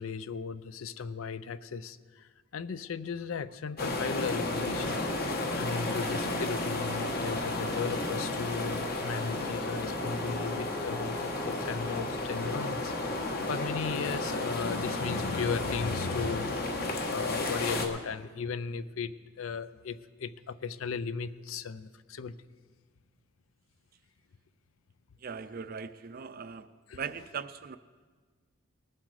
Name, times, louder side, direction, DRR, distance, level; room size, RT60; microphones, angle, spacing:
voice 1, 0.0-5.0 5.5-22.3 26.9-27.0, left 5 dB, 75° left, 15 dB, 0.5 m, -36 dB
sound 1, 3.8-17.9, left 2 dB, 45° left, 1.2 m, -33 dB
Brass instrument, 8.6-12.8, left 2 dB, 15° left, 0.9 m, -44 dB
voice 2, 25.2-26.7 26.9-27.8, right 6 dB, 45° right, 13 dB, 0.4 m, -39 dB
19.5 x 7.7 x 4.8 m, 1.5 s
head